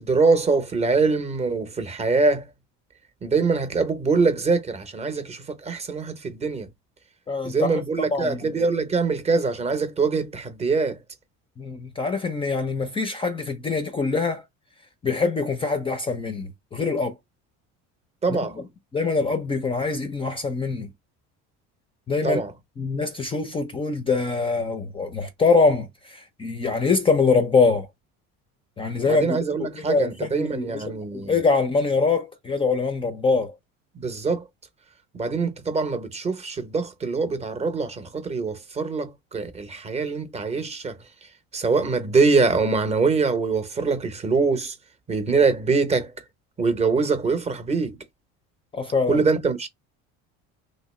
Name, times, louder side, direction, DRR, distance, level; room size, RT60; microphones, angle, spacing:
voice 1, 0.0-2.5 3.2-6.7 7.4-11.0 18.2-18.6 22.2-22.5 29.1-31.3 34.0-34.5 35.1-41.0 41.5-44.7 45.1-46.1 46.6-48.0 49.1-49.7, right 4 dB, 20° right, 0.7 m, -23 dB
voice 2, 7.3-7.8 8.1-8.6 11.6-14.4 15.0-17.1 18.3-18.6 18.9-20.9 22.1-22.4 22.8-27.9 28.8-33.6 48.7-49.2, left 4 dB, 20° left, 0.4 m, -24 dB
3.0 x 2.8 x 3.0 m
cardioid pair, 125°, 30 cm